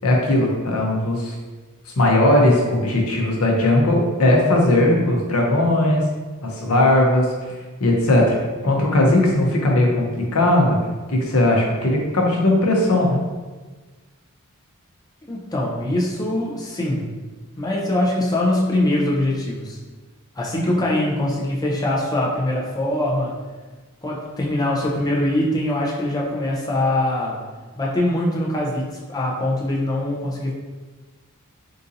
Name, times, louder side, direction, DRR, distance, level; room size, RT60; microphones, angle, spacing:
voice 1, 0.0-1.4 2.0-6.1 6.4-7.5 7.8-8.4 8.6-10.8 11.1-13.2, left 1 dB, 75° left, -1 dB, 0.7 m, -18 dB
voice 2, 15.3-17.2 17.6-19.8 20.4-23.4 24.0-27.4 27.8-30.5, left 1 dB, 15° left, -4 dB, 0.5 m, -23 dB
3.8 x 2.6 x 2.6 m, 1.3 s
head